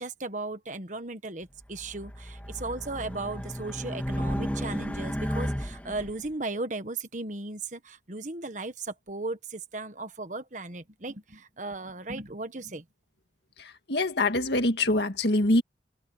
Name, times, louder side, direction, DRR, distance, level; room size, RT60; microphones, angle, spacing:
voice 1, 0.0-12.8, right 2 dB, 40° right, 1.4 m, -36 dB
Race car auto racing, 1.7-6.1, equal, 10° left, 2.7 m, -33 dB
voice 2, 13.6-15.6, left 2 dB, 65° left, 2.0 m, -25 dB
head